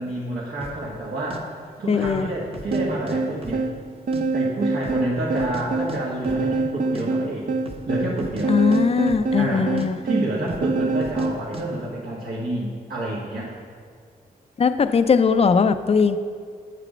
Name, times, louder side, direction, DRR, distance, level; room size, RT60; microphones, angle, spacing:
voice 1, 0.0-1.5 1.8-3.6 4.3-7.4 7.9-8.6 9.4-9.7 10.0-13.5, right 1 dB, 75° right, -7 dB, 1.6 m, -28 dB
sound 1, 0.6-0.8 1.3-1.4 1.9-2.2 2.5-3.2 3.4-4.2 4.5-4.6 4.8-5.6 5.9-6.0 6.2-6.5 6.8-7.1 7.6-7.9 8.2-9.5 9.8-9.9 10.5-10.7 11.0-11.3 11.5-11.7, right 1 dB, 35° right, 1.1 m, -37 dB
voice 2, 1.9-2.3 8.5-10.0 14.6-16.2, left 5 dB, 40° left, 11 dB, 0.5 m, -19 dB
sound 2, 2.7-11.4, right 3 dB, 55° right, 0.6 m, -25 dB
7.6 x 6.6 x 5.1 m, 2.1 s
cardioid pair, 65°, 17 cm